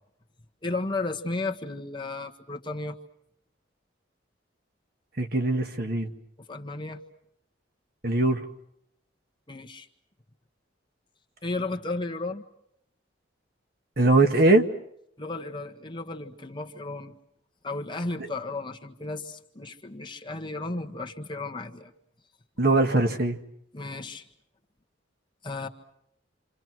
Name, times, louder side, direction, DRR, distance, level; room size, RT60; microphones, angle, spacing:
voice 1, 0.6-3.0 6.5-7.0 9.5-9.9 11.4-12.4 15.2-17.1 17.6-21.9 23.7-24.2 25.4-25.7, left 2 dB, 25° left, 1.6 m, -34 dB
voice 2, 5.2-6.1 8.0-8.4 14.0-14.7 22.6-23.4, right 2 dB, 55° right, 1.9 m, -21 dB
28.0 x 27.5 x 6.2 m
head